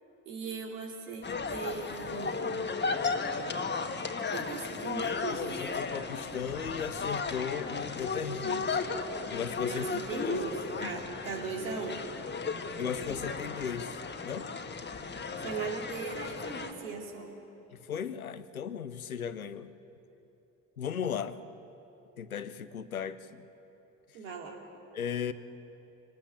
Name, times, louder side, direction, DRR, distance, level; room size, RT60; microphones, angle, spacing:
voice 1, 0.2-2.7 4.3-5.7 9.7-12.0 15.4-17.4 24.1-24.6, right 5 dB, 70° right, 1 dB, 2.7 m, -39 dB
sound 1, 1.2-16.7, left 4 dB, 25° left, 1.6 m, -35 dB
voice 2, 5.3-8.8 9.3-9.9 10.2-10.3 10.8-11.0 12.8-14.5 17.7-19.7 20.8-21.4 22.2-23.4 24.9-25.3, left 7 dB, 85° left, 14 dB, 0.6 m, -36 dB
25.5 x 19.0 x 7.1 m, 2.9 s
figure-of-eight pair, 45°, 41 cm